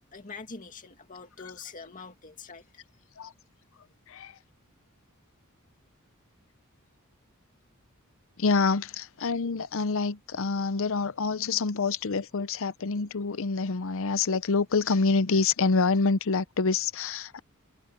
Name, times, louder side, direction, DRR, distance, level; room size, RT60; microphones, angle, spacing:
voice 1, 0.1-2.6, left 4 dB, 40° left, 2.2 m, -44 dB
voice 2, 4.1-4.4 8.4-17.4, left 4 dB, 65° left, 0.7 m, -27 dB
head